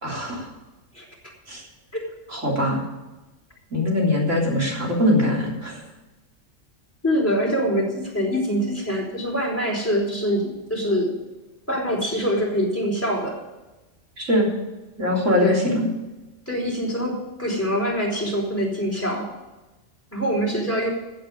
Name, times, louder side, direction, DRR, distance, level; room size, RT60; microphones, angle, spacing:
voice 1, 0.0-0.5 1.5-1.6 2.3-2.8 3.7-5.8 14.2-14.5 15.0-15.9, left 1 dB, 80° right, -2 dB, 3.9 m, -22 dB
voice 2, 7.0-11.1 11.7-13.4 15.4-15.6 16.5-19.3 20.1-20.9, equal, 10° left, -2 dB, 4.4 m, -24 dB
15.0 x 8.0 x 6.9 m, 1.1 s
omnidirectional pair, 1.3 m